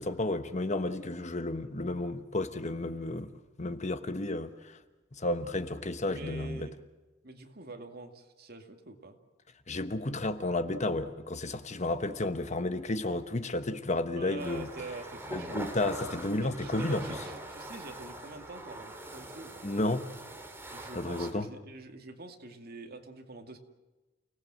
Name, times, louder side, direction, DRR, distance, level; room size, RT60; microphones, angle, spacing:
voice 1, 0.0-4.8 5.1-6.7 9.7-14.7 15.3-17.0 19.6-20.1 20.9-21.5, left 2 dB, 35° left, 1.1 m, -32 dB
voice 2, 6.1-6.8 7.2-9.2 14.2-15.7 16.4-19.7 20.7-23.6, right 2 dB, 50° right, 2.3 m, -45 dB
sound 1, 14.4-21.3, right 1 dB, 10° right, 2.8 m, -43 dB
29.5 x 18.0 x 7.5 m
head